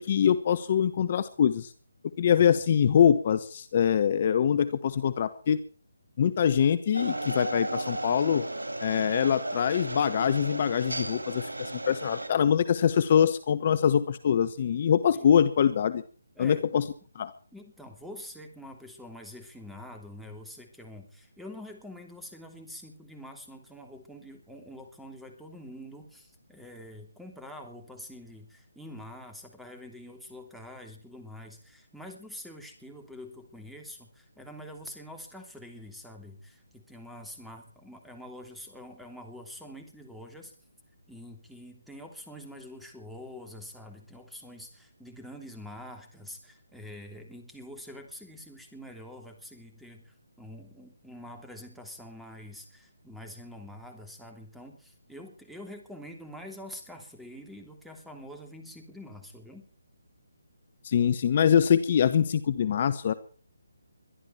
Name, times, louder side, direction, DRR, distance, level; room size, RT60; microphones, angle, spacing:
voice 1, 0.0-1.7 2.2-5.6 6.2-8.4 8.8-16.0 16.4-16.8 17.1-17.3 60.8-63.1, left 8 dB, 40° left, 14 dB, 1.1 m, -24 dB
sound 1, 6.9-12.3, right 1 dB, 80° right, 4.0 m, -34 dB
voice 2, 16.4-16.7 17.5-40.5 41.1-59.7, left 1 dB, ahead, 3 dB, 3.0 m, -46 dB
22.5 x 12.0 x 4.5 m, 0.43 s
figure-of-eight pair, 150°, 0 cm